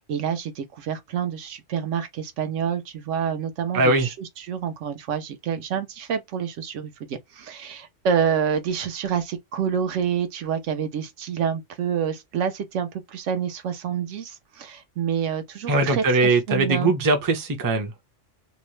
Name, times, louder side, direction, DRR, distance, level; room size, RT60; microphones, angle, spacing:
voice 1, 0.0-16.9, right 7 dB, 80° right, 1.0 m, -28 dB
voice 2, 3.7-4.1 15.7-17.9, right 3 dB, 25° right, 0.5 m, -21 dB
2.8 x 2.0 x 3.1 m
omnidirectional pair, 1.3 m